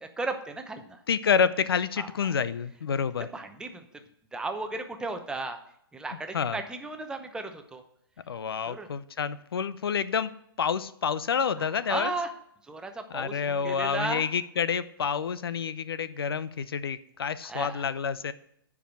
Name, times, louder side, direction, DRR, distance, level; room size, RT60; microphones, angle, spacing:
voice 1, 0.0-1.0 2.0-2.1 3.3-3.8 4.3-5.6 5.9-7.8 8.7-8.9 11.9-12.3 12.7-14.2 17.4-17.8, right 3 dB, 5° right, 6 dB, 0.8 m, -35 dB
voice 2, 1.1-3.3 6.3-6.6 8.3-10.3 10.6-12.1 13.1-18.3, left 6 dB, 75° left, 15 dB, 0.6 m, -28 dB
10.0 x 4.8 x 6.1 m, 0.70 s
hypercardioid pair, 130°, 13 cm